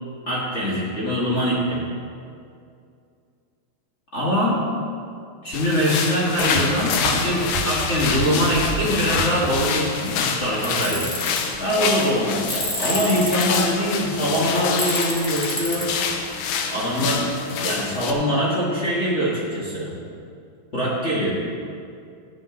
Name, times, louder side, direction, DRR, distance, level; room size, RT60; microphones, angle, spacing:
voice 1, 0.3-1.8 4.1-4.6 5.4-11.1 11.6-15.9 16.7-17.3 17.6-19.9 20.7-21.3, equal, 50° left, -7 dB, 0.8 m, -23 dB
sound 1, 5.5-18.1, left 6 dB, 75° left, 2.1 m, -27 dB
sound 2, 6.4-9.7 10.2-10.7 10.9-11.2 11.5-11.8 12.4-12.7, right 3 dB, 80° right, 2.8 m, -31 dB
Tools, 10.6-11.4 12.5-13.6 14.8-15.8, equal, 30° left, 1.4 m, -28 dB
14.5 x 9.6 x 3.8 m, 2.4 s
omnidirectional pair, 4.6 m